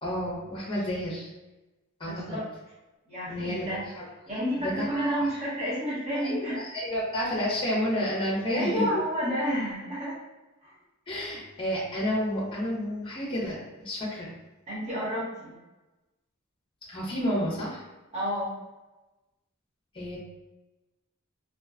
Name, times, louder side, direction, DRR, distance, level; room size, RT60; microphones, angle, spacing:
voice 1, 0.0-1.3 2.0-2.4 3.3-4.0 4.6-5.3 6.1-8.9 11.1-14.3 16.9-17.8 19.9-20.2, equal, 25° left, -4 dB, 0.7 m, -30 dB
voice 2, 2.1-2.5 3.1-3.9 4.3-6.6 8.5-10.2 10.6-10.7 14.7-15.5 18.1-18.5, equal, 30° right, -9 dB, 0.9 m, -30 dB
2.5 x 2.1 x 2.4 m, 1.1 s
head